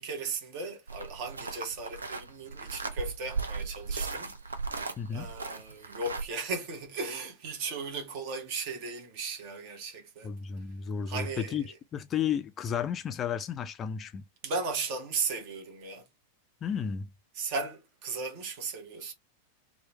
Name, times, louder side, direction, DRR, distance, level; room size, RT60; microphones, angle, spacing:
voice 1, 0.0-4.3 5.1-10.3 11.1-11.8 14.4-16.1 17.3-19.1, right 4 dB, 45° right, 0.9 m, -36 dB
sound 1, 0.9-6.3, right 4 dB, 75° right, 0.4 m, -37 dB
voice 2, 5.0-5.3 10.2-11.6 11.9-14.2 16.6-17.1, left 7 dB, 25° left, 0.3 m, -33 dB
2.9 x 2.1 x 3.0 m
figure-of-eight pair, 90°, 0 cm